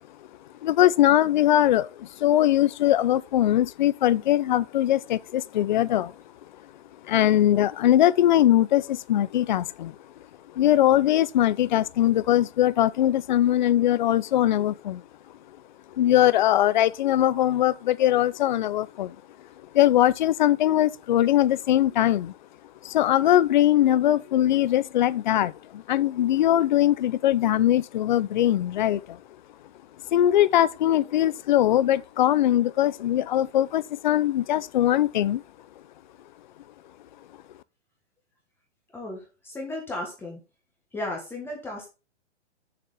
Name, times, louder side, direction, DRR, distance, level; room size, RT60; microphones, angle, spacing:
voice 1, 0.6-6.1 7.1-9.9 10.5-15.0 16.0-19.2 19.7-22.3 22.8-29.2 30.1-35.4, left 12 dB, 40° left, 0.4 m, -21 dB
voice 2, 38.9-40.4 40.9-41.9, left 1 dB, 5° left, 1.4 m, -35 dB
6.8 x 6.5 x 3.5 m
hypercardioid pair, 155°, 35 cm